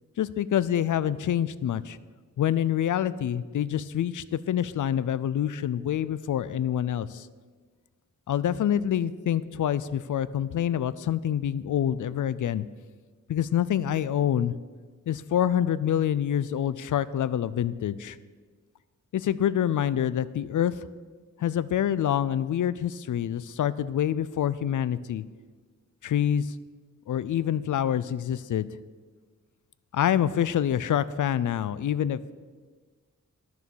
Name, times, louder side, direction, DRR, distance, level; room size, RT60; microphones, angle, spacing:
voice 1, 0.2-2.0 2.4-7.3 8.3-12.7 13.3-14.5 15.1-18.2 19.1-20.7 21.4-25.2 26.0-26.5 27.1-28.7 29.9-32.3, left 10 dB, 70° left, 17 dB, 0.4 m, -26 dB
11.0 x 6.9 x 6.3 m, 1.5 s
wide cardioid pair, 165°, 32 cm